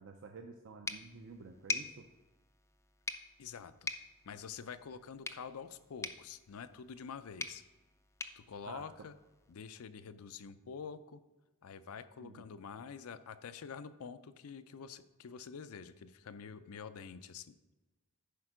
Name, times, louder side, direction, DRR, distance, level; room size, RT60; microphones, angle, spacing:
voice 1, 0.0-2.1 8.7-8.9 12.2-12.5, right 4 dB, 60° right, 4 dB, 0.5 m, -51 dB
sound 1, 0.9-9.5, left 3 dB, 15° left, 0.3 m, -45 dB
voice 2, 3.4-3.9 4.2-7.6 8.4-9.1 9.5-11.2 11.6-17.6, left 6 dB, 80° left, 12 dB, 0.5 m, -47 dB
10.5 x 4.4 x 4.9 m, 1.1 s
head